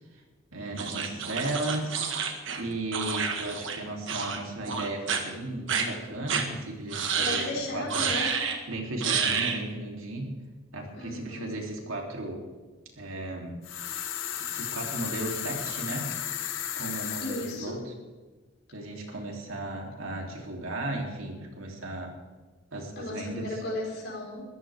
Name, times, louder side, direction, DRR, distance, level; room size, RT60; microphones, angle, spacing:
voice 1, 0.5-2.0 2.5-7.4 7.7-8.1 8.7-10.3 10.7-12.4 13.0-13.6 14.5-16.1 16.7-17.9 18.7-22.1 22.7-23.5, right 2 dB, 80° right, 0 dB, 3.4 m, -35 dB
sound 1, 0.8-3.8 4.1-4.4 4.7-5.2 5.7-5.8 6.3-6.4 6.9-7.5 7.9-8.6 9.0-9.6, right 6 dB, 60° right, 1.8 m, -29 dB
voice 2, 7.2-8.3 10.9-11.5 17.2-17.8 23.0-24.4, left 1 dB, 50° left, -4 dB, 4.8 m, -35 dB
sound 2, 13.6-17.6, left 10 dB, 65° left, 1.2 m, -34 dB
22.0 x 14.5 x 3.7 m, 1.3 s
head